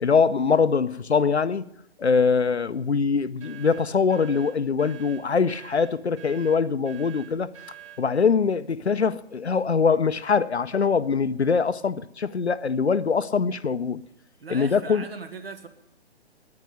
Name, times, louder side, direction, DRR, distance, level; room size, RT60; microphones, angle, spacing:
voice 1, 0.0-1.7 2.0-7.5 8.0-14.0 14.5-15.0, left 5 dB, 80° left, 0.7 m, -23 dB
sound 1, 3.4-8.1, right 12 dB, 30° right, 0.8 m, -46 dB
voice 2, 14.4-15.7, right 4 dB, 65° right, 1.6 m, -39 dB
9.8 x 9.5 x 9.6 m
figure-of-eight pair, 130°, 33 cm